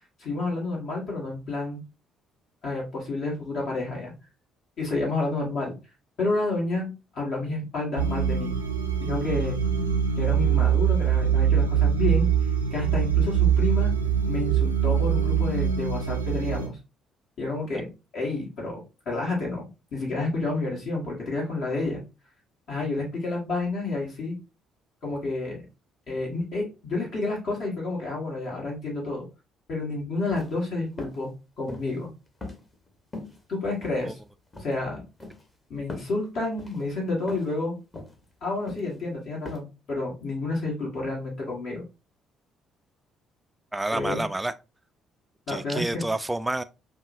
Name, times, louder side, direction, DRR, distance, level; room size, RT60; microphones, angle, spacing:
voice 1, 0.2-1.8 2.6-4.1 4.8-5.8 6.2-8.5 9.0-9.6 10.2-12.3 12.7-13.9 14.3-16.8 17.4-22.0 22.7-24.4 25.0-25.6 26.1-29.3 29.7-31.3 31.6-32.1 33.5-34.2 34.6-35.0 35.7-37.8 38.4-41.8 43.9-44.3 45.5-46.0, left 2 dB, 55° left, 1.7 m, -30 dB
sound 1, 8.0-16.7, right 8 dB, 90° right, 0.4 m, -23 dB
sound 2, 30.2-30.5 31.0-31.2 31.7-32.0 32.4-32.9 33.1-33.4 33.8-34.3 34.5-34.8 35.2-35.4 35.9-36.1 36.6-36.8 37.3-37.5 37.9-38.2 38.7-38.9 39.5-39.6, left 2 dB, 25° left, 1.2 m, -39 dB
voice 2, 43.7-44.5 45.5-46.6, right 2 dB, 10° right, 0.3 m, -29 dB
5.4 x 2.3 x 2.6 m
figure-of-eight pair, 45°, 0 cm